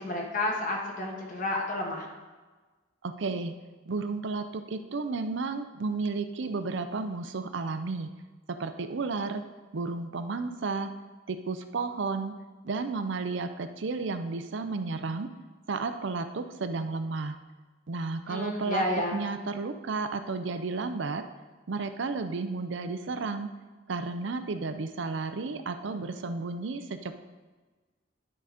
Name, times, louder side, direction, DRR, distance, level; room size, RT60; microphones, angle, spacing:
voice 1, 0.0-2.1 18.3-19.2, left 1 dB, 45° left, 0 dB, 1.4 m, -31 dB
voice 2, 3.0-3.6 3.9-8.1 8.5-9.5 9.7-11.0 11.3-12.4 12.6-15.3 15.7-17.4 17.9-18.8 19.1-21.2 21.7-23.5 23.9-27.2, right 4 dB, 65° right, 9 dB, 0.5 m, -32 dB
11.0 x 3.9 x 5.0 m, 1.3 s
head